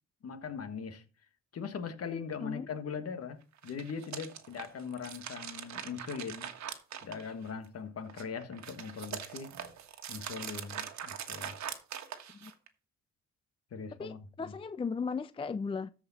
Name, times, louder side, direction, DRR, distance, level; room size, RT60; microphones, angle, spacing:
voice 1, 0.2-1.0 1.5-3.4 3.6-6.5 7.0-9.5 10.1-11.5 13.7-14.6, left 6 dB, 55° left, 1.6 m, -40 dB
sound 1, 3.5-7.7 8.1-12.7, right 9 dB, 65° right, 1.4 m, -42 dB
voice 2, 14.0-15.9, left 5 dB, 20° left, 0.4 m, -36 dB
13.5 x 5.0 x 4.1 m
cardioid pair, 90°, 30 cm